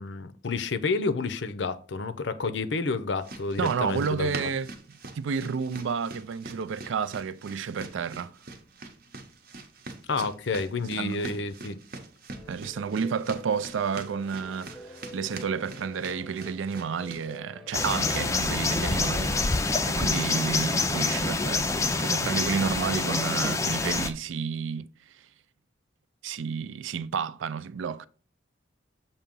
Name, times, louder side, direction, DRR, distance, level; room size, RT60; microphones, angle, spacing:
voice 1, 0.0-4.5 10.1-11.8, left 3 dB, 65° left, 0.6 m, -30 dB
sound 1, 3.2-17.4, right 3 dB, 50° right, 0.8 m, -44 dB
voice 2, 3.6-4.7 5.1-8.3 10.2-10.3 11.0-11.4 12.5-19.5 19.9-24.9 25.1-25.2 26.2-28.1, right 6 dB, 75° right, 0.4 m, -31 dB
sound 2, 12.3-19.5, equal, ahead, 0.9 m, -47 dB
sound 3, 17.7-24.1, left 3 dB, 15° left, 0.4 m, -26 dB
7.0 x 2.8 x 5.3 m
head